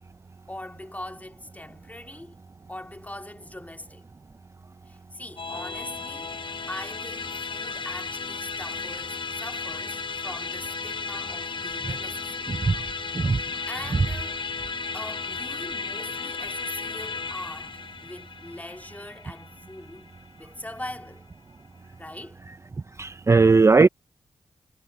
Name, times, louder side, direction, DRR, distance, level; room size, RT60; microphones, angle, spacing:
voice 1, 0.5-2.4 2.7-4.1 4.9-12.6 13.3-14.5 14.9-21.3 22.0-22.4, left 1 dB, 15° left, 2.9 m, -41 dB
Musical instrument, 5.4-20.9, left 4 dB, 50° left, 1.0 m, -34 dB
voice 2, 23.0-23.9, right 4 dB, 25° right, 0.4 m, -17 dB
cardioid pair, 55°, 11 cm